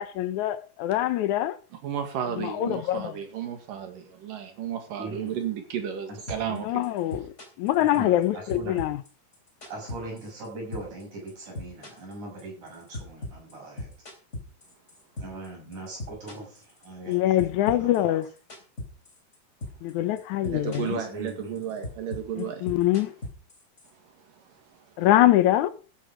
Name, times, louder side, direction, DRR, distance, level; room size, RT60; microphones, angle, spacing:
voice 1, 0.0-1.6 2.4-3.2 6.5-9.0 17.1-18.3 19.8-21.0 22.4-23.1 25.0-25.7, left 14 dB, 70° left, 2.0 m, -24 dB
voice 2, 1.8-6.8 7.9-8.1 20.4-22.7 24.4-24.8, right 8 dB, 75° right, 3.5 m, -33 dB
voice 3, 5.0-5.4 6.1-6.7 7.8-8.8 9.7-13.9 15.2-18.2 20.8-21.5, right 2 dB, 60° right, 8.7 m, -40 dB
sound 1, 6.3-6.6 6.8-8.2 8.5-10.5 10.7-11.0 11.3-15.5 15.7-17.1 17.4-19.3 19.6-19.9 20.2-21.0 21.3-23.9, left 1 dB, 20° left, 3.5 m, -38 dB
14.5 x 9.3 x 5.0 m
omnidirectional pair, 3.9 m